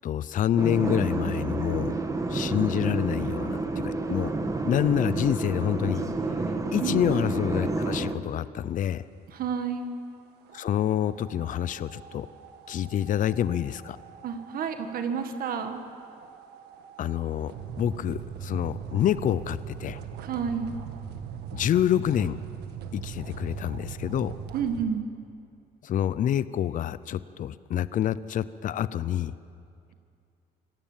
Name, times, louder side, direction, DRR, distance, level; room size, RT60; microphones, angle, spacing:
voice 1, 0.0-2.0 2.3-4.3 4.6-6.1 6.7-9.0 10.5-12.3 12.7-14.0 17.0-20.0 21.5-22.4 22.9-24.3 25.8-29.3, left 10 dB, 50° left, 16 dB, 0.6 m, -27 dB
sound 1, 0.6-8.1, right 3 dB, 20° right, 1.5 m, -29 dB
voice 2, 9.3-9.9 14.2-15.8 20.2-20.7 24.5-25.0, right 6 dB, 60° right, 7 dB, 1.8 m, -30 dB
sound 2, 10.4-24.8, right 8 dB, 75° right, 1.6 m, -41 dB
26.0 x 16.0 x 7.5 m, 2.4 s
cardioid pair, 110°, 17 cm